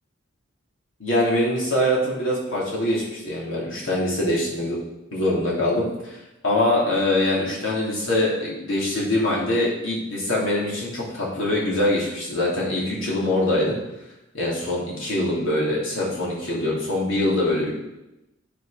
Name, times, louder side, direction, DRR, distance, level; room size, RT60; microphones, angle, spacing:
voice 1, 1.0-4.8 5.1-6.2 6.4-13.8 14.3-17.8, left 1 dB, 70° left, -5 dB, 3.1 m, -23 dB
9.2 x 5.6 x 5.0 m, 0.95 s
head